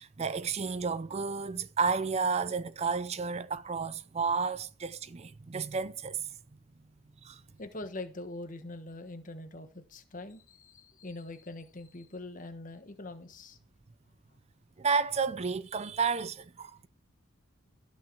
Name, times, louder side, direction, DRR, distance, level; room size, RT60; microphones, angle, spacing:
voice 1, 0.0-6.3 7.2-7.4 14.8-16.9, right 5 dB, 30° right, 0.4 m, -31 dB
voice 2, 7.6-13.6, left 2 dB, 40° left, 1.3 m, -43 dB
17.0 x 6.5 x 4.6 m
head